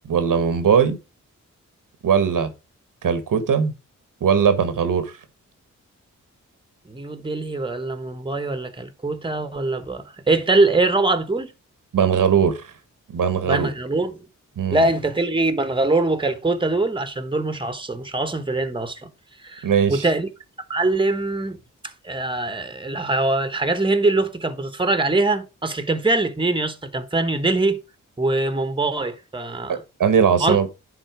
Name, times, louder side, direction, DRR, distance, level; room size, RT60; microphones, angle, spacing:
voice 1, 0.0-1.0 2.0-2.5 3.0-3.7 4.2-5.1 11.9-12.6 13.1-13.7 14.6-14.9 19.6-20.1 29.7-30.7, right 7 dB, 80° right, 1.2 m, -19 dB
voice 2, 6.9-11.5 13.4-14.2 14.7-19.1 19.4-20.3 20.7-21.6 22.0-27.8 28.2-29.8 30.4-30.7, right 2 dB, 15° right, 1.1 m, -23 dB
9.9 x 3.8 x 4.7 m
cardioid pair, 55°, 32 cm